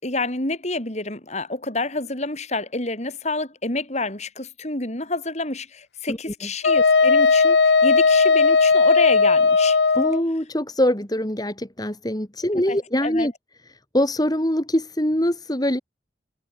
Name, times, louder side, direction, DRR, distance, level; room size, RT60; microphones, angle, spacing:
voice 1, 0.0-9.8 12.6-13.3, left 2 dB, 40° left, 4.4 m, -28 dB
Wind instrument woodwind instrument, 6.6-10.2, left 4 dB, 75° left, 0.8 m, -16 dB
voice 2, 9.9-13.3 13.9-15.8, left 1 dB, 20° left, 3.2 m, -23 dB
head